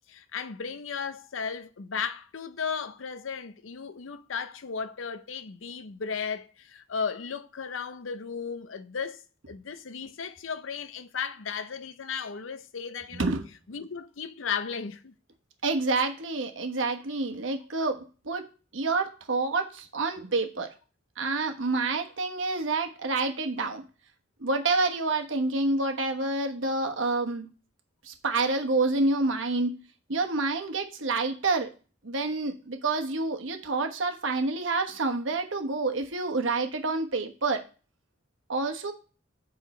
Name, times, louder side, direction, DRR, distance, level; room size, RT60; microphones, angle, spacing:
voice 1, 0.1-13.3 13.7-15.1, left 6 dB, 90° left, 0.6 m, -35 dB
voice 2, 13.1-13.5 15.6-18.4 18.7-20.7 21.2-23.8 24.4-27.5 28.0-29.8 30.1-31.7 32.0-37.6 38.5-38.9, right 3 dB, 80° right, 1.1 m, -28 dB
6.9 x 5.1 x 4.3 m
head